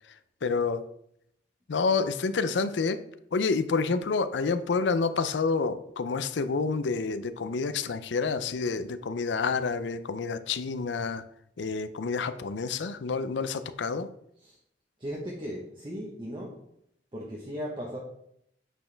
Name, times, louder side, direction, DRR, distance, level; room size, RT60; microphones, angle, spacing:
voice 1, 0.4-0.8 1.7-3.0 3.3-11.2 11.6-14.1, left 4 dB, 90° left, 12 dB, 0.5 m, -28 dB
voice 2, 15.0-16.6 17.1-18.0, equal, 30° right, -2 dB, 1.0 m, -37 dB
8.9 x 4.4 x 3.4 m, 0.73 s
head